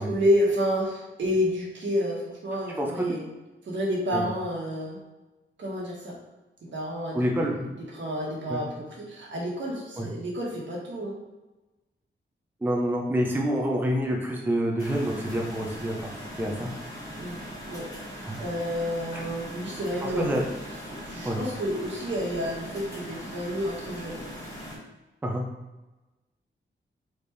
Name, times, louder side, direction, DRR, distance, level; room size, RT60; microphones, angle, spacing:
voice 1, 0.0-3.2 3.7-5.0 5.6-6.2 6.6-7.3 7.9-11.2 17.2-17.9 18.4-20.3 20.9-24.2, equal, 65° right, -3 dB, 1.3 m, -29 dB
voice 2, 7.1-7.7 8.5-8.6 10.0-10.1 12.6-16.0 16.4-17.0 18.2-18.4 19.1-19.2 20.0-20.4 21.2-21.4 25.2-25.4, equal, 10° right, -1 dB, 0.5 m, -27 dB
sound 1, 14.8-24.8, equal, 15° left, 1.2 m, -40 dB
4.3 x 3.4 x 3.2 m, 1.1 s
wide cardioid pair, 145°, 20 cm